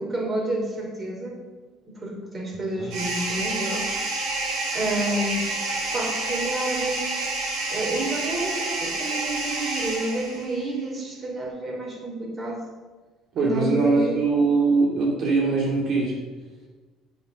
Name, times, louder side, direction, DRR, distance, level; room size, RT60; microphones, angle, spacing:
voice 1, 0.0-1.4 1.9-3.9 4.7-7.1 7.7-12.7 13.4-14.2, right 1 dB, 30° right, 1 dB, 3.0 m, -30 dB
sound 1, 2.9-10.6, right 2 dB, 75° right, 3.3 m, -29 dB
voice 2, 13.3-16.2, right 3 dB, 60° right, -2 dB, 2.3 m, -22 dB
9.3 x 7.8 x 6.4 m, 1.3 s
supercardioid pair, 95°, 0 cm